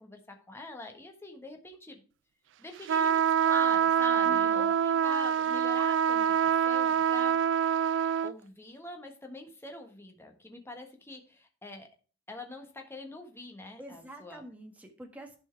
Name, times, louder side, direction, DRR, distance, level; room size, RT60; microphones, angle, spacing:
voice 1, 0.0-2.0 2.6-7.4 8.2-11.9 12.3-14.4, left 2 dB, 15° left, 4 dB, 1.3 m, -44 dB
sound 1, 2.9-8.3, right 8 dB, 65° right, 0.3 m, -25 dB
voice 2, 4.2-4.7 13.8-15.4, equal, 10° right, 3 dB, 1.3 m, -46 dB
11.0 x 4.5 x 4.5 m, 0.37 s
head